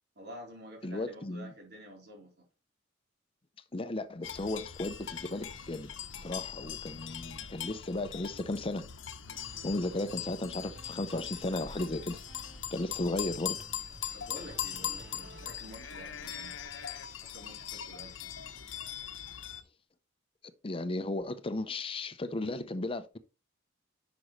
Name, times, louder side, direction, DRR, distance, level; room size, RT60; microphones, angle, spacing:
voice 1, 0.2-2.3 13.0-13.1 14.1-16.6 17.2-18.3, equal, 55° right, 3.6 m, -49 dB
voice 2, 0.8-1.5 3.7-5.9 6.1-8.9 9.6-12.2 12.7-13.6 20.6-23.2, left 2 dB, 30° left, 0.6 m, -35 dB
sound 1, 4.2-19.6, left 9 dB, 80° left, 0.9 m, -41 dB
sound 2, 9.2-15.6, right 1 dB, 80° right, 3.4 m, -53 dB
10.5 x 6.1 x 3.1 m
head